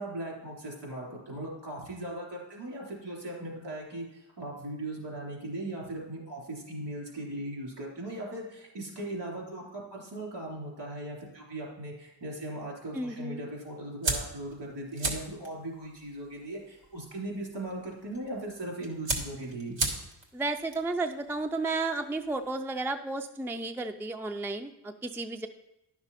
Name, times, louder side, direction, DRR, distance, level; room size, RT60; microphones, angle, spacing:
voice 1, 0.0-19.8, right 1 dB, 70° right, -2 dB, 3.5 m, -38 dB
voice 2, 12.9-13.5 20.3-25.5, right 3 dB, 5° right, 7 dB, 0.4 m, -33 dB
sound 1, 14.0-22.5, right 2 dB, 90° right, 1.5 m, -38 dB
10.5 x 6.1 x 4.1 m, 0.88 s
cardioid pair, 80°, 44 cm